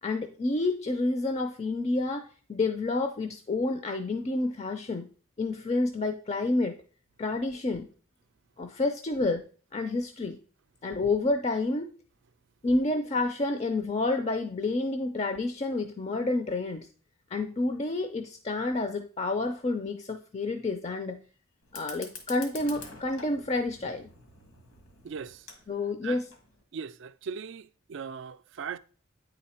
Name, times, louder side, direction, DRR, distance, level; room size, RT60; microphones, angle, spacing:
voice 1, 0.0-5.1 5.4-6.8 7.2-7.9 8.6-10.4 10.8-11.9 12.6-16.9 17.3-21.2 21.7-24.1 25.7-26.3, left 2 dB, 30° left, 0.4 m, -29 dB
Fire, 21.6-26.6, left 4 dB, 90° left, 1.7 m, -48 dB
voice 2, 25.0-25.5 26.0-26.2 26.7-28.8, right 6 dB, 55° right, 0.3 m, -39 dB
9.0 x 4.0 x 4.3 m
head